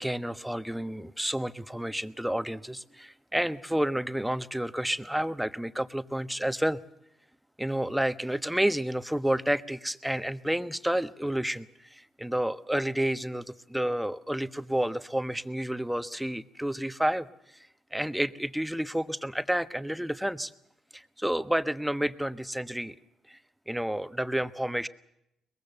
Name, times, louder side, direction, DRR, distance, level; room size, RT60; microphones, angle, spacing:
voice 1, 0.0-6.8 7.6-17.3 17.9-20.5 20.9-23.0 23.3-23.4 23.7-24.9, right 1 dB, 5° right, 12 dB, 1.2 m, -30 dB
23.0 x 21.0 x 6.8 m, 0.82 s
hypercardioid pair, 50°, 0 cm